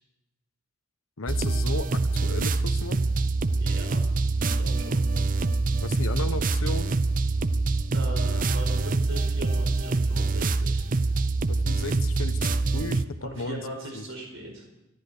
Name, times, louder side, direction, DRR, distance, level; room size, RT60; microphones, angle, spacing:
voice 1, 1.2-3.0 5.8-7.0 11.5-14.0, left 2 dB, 85° left, 11 dB, 1.0 m, -35 dB
sound 1, 1.3-13.0, right 3 dB, 40° right, 0.5 m, -25 dB
voice 2, 3.6-4.0 4.4-5.0 7.9-10.8 13.2-14.6, right 1 dB, 70° right, 2 dB, 4.7 m, -39 dB
24.5 x 11.0 x 5.0 m, 0.93 s
head